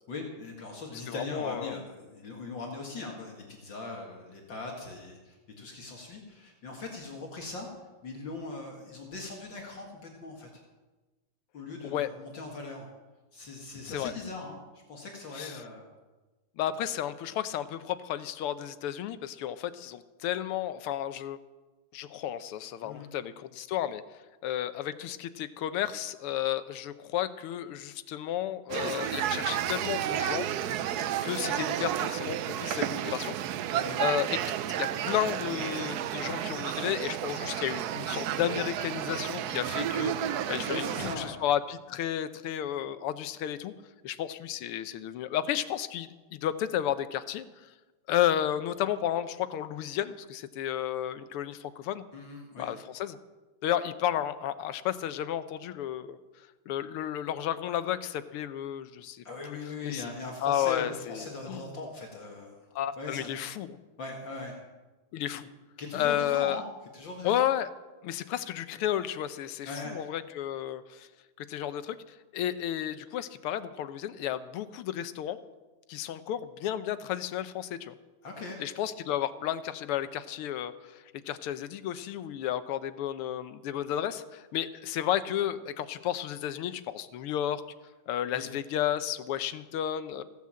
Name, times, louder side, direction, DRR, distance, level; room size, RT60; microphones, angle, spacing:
voice 1, 0.1-7.7 8.0-10.6 11.5-12.9 13.3-14.6 14.9-15.9 22.8-23.1 33.7-34.0 40.4-41.4 52.1-52.7 59.2-62.6 63.0-63.4 64.0-64.6 65.8-66.6 66.9-67.4 69.6-70.0 78.2-78.6 88.3-88.5, left 3 dB, 60° left, 0 dB, 2.4 m, -40 dB
voice 2, 1.1-1.7 11.8-12.1 13.9-14.1 15.4-15.6 16.6-21.4 21.9-24.0 24.4-30.5 31.2-33.4 34.0-34.4 34.7-43.7 44.0-47.5 48.1-52.0 52.6-53.2 53.6-56.2 56.7-59.2 59.8-60.0 60.4-61.7 62.8-63.8 65.1-65.5 65.9-66.6 67.2-67.7 68.0-71.1 71.4-72.0 72.3-75.4 75.9-77.9 78.6-87.6 88.1-90.2, left 11 dB, 85° left, 12 dB, 1.7 m, -32 dB
sound 1, 28.7-41.2, right 10 dB, 80° right, 0.8 m, -32 dB
15.5 x 9.4 x 7.5 m, 1.2 s
omnidirectional pair, 2.4 m